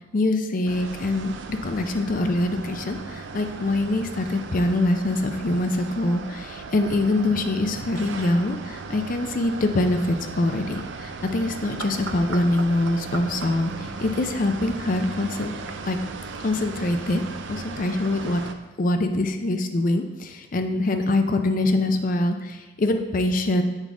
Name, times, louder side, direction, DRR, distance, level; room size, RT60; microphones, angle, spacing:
voice 1, 0.1-15.5 15.9-16.0 16.4-17.2 17.5-18.4 18.8-23.6, left 2 dB, 50° left, 7 dB, 0.5 m, -24 dB
sound 1, 0.7-18.5, right 4 dB, 90° right, 0.5 m, -37 dB
8.1 x 4.1 x 3.5 m, 1.2 s
head